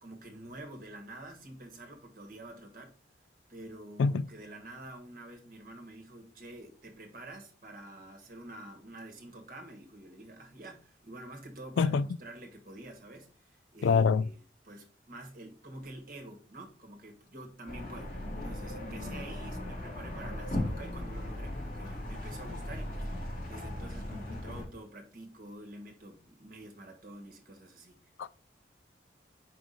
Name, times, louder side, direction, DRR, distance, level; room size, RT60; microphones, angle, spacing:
voice 1, 0.0-2.9 3.5-14.4 14.6-23.1 23.4-28.0, right 1 dB, 50° right, 1.4 m, -48 dB
voice 2, 13.8-14.2 28.2-28.3, left 5 dB, 85° left, 0.3 m, -24 dB
sound 1, 17.7-24.6, left 1 dB, 45° left, 2.5 m, -37 dB
4.9 x 4.8 x 3.9 m
head